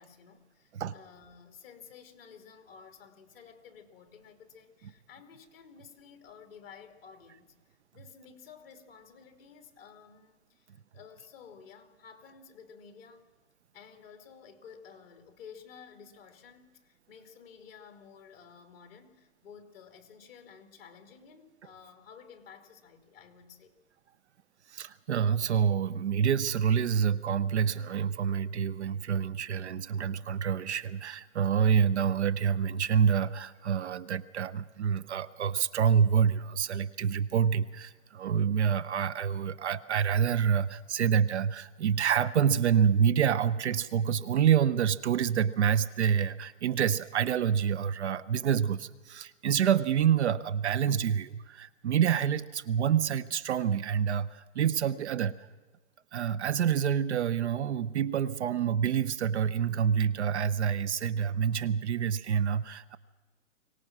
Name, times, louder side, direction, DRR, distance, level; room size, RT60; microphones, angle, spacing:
voice 1, 0.0-13.3 13.7-23.7, left 6 dB, 45° left, 2.8 m, -53 dB
voice 2, 24.7-55.4 56.1-63.0, right 8 dB, 60° right, 0.8 m, -27 dB
23.5 x 18.5 x 6.1 m
hypercardioid pair, 180°, 39 cm